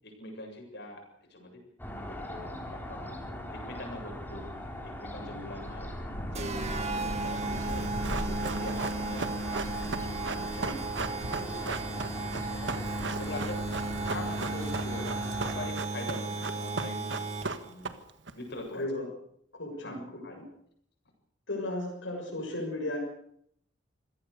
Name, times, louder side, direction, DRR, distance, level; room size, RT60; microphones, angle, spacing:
voice 1, 0.0-1.0 1.3-1.5 1.9-4.5 4.8-6.5 6.9-10.0 10.3-12.8 13.2-13.6 14.0-15.1 15.4-17.1 17.7-17.9 18.3-18.8 19.8-20.4, left 1 dB, 60° left, 2 dB, 7.7 m, -43 dB
sound 1, 1.8-15.7, equal, 10° left, 4.2 m, -39 dB
sound 2, 6.3-17.7, right 2 dB, 35° right, 2.0 m, -35 dB
Run, 7.7-18.3 18.6-18.7, right 4 dB, 70° right, 1.6 m, -37 dB
voice 2, 10.3-10.8 18.7-19.1 19.6-20.0 21.5-23.0, left 1 dB, 80° left, -2 dB, 6.7 m, -35 dB
26.0 x 17.0 x 6.8 m, 0.70 s
head